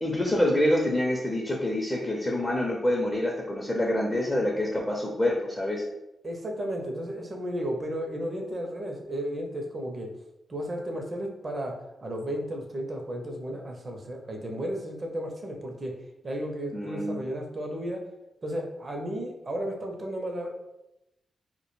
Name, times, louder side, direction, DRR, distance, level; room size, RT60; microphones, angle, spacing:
voice 1, 0.0-5.8 16.7-17.2, left 1 dB, 20° left, -2 dB, 0.5 m, -26 dB
voice 2, 6.2-10.1 10.5-11.7 12.0-15.9 16.2-18.0 18.4-20.5, equal, 45° right, 2 dB, 0.5 m, -33 dB
2.1 x 2.1 x 3.0 m, 0.92 s
supercardioid pair, 45°, 0 cm